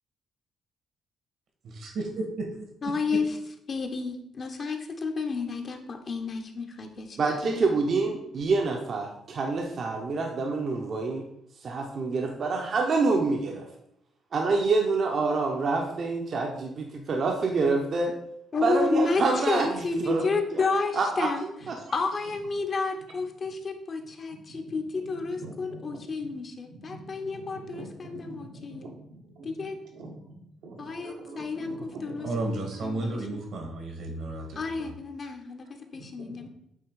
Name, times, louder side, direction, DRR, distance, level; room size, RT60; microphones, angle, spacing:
voice 1, 1.8-2.7 3.1-3.2 32.2-34.9, right 2 dB, 70° right, 3 dB, 1.8 m, -33 dB
voice 2, 2.8-3.4 3.7-7.2 7.4-7.6 18.5-21.5 21.9-28.9 29.4-29.8 30.8-33.2 34.6-36.5, left 4 dB, 45° left, 4 dB, 1.0 m, -31 dB
voice 3, 7.2-11.2 11.6-13.7 14.3-18.1 18.6-20.2 20.5-20.6 20.9-21.3 21.7-21.8, right 3 dB, 55° right, 2 dB, 0.9 m, -26 dB
voice 4, 25.3-26.3 26.6-29.5 29.9-30.3 30.6-32.3 32.9-33.0 35.9-36.1 36.4-36.5, right 2 dB, 90° right, -1 dB, 1.7 m, -45 dB
8.4 x 3.0 x 4.7 m, 0.76 s
cardioid pair, 90°, 0 cm